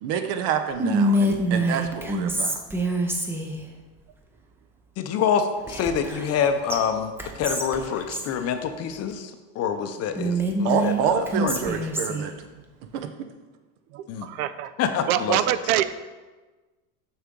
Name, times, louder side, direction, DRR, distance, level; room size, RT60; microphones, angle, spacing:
voice 1, 0.0-2.6 10.6-12.3 12.9-13.1, right 7 dB, 60° right, 8 dB, 0.9 m, -27 dB
Whispering, 0.8-3.6 5.7-6.4 6.7-6.8 7.2-8.3 10.1-12.3, right 1 dB, 5° right, 0.4 m, -25 dB
voice 2, 5.0-11.5 14.1-14.3 14.8-15.4, left 7 dB, 35° left, 7 dB, 0.6 m, -26 dB
voice 3, 13.9-14.7 15.1-15.8, right 12 dB, 85° right, 13 dB, 0.5 m, -24 dB
6.6 x 6.3 x 3.7 m, 1.3 s
supercardioid pair, 130°, 41 cm